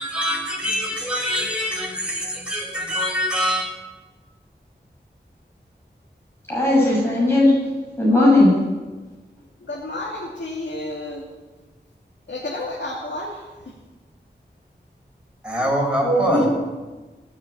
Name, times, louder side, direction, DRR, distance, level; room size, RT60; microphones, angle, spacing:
voice 1, 0.0-3.7 15.4-16.5, equal, 5° right, -1 dB, 5.5 m, -24 dB
voice 2, 6.5-7.5 8.0-8.5 16.0-16.5, left 1 dB, 15° left, -5 dB, 6.7 m, -16 dB
voice 3, 9.6-11.2 12.3-13.7, left 2 dB, 75° left, -4 dB, 2.5 m, -31 dB
18.0 x 7.5 x 8.8 m, 1.3 s
wide cardioid pair, 50°, 18 cm